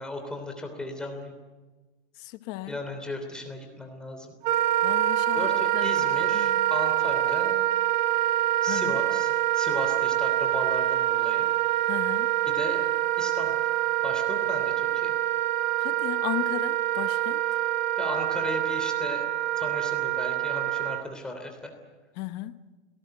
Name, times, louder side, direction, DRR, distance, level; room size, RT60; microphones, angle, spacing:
voice 1, 0.0-1.3 2.7-4.3 5.3-7.6 8.6-11.5 12.4-12.9 13.2-13.5 14.0-15.1 18.0-19.3 19.6-21.7, left 1 dB, 5° left, 3.2 m, -36 dB
voice 2, 2.2-2.8 4.8-6.7 8.6-9.0 11.8-12.3 15.8-17.4 22.2-22.6, left 16 dB, 35° left, 1.0 m, -36 dB
Wind instrument woodwind instrument, 4.4-21.0, right 13 dB, 55° right, 1.5 m, -25 dB
28.0 x 18.5 x 7.8 m
supercardioid pair, 170°, 29 cm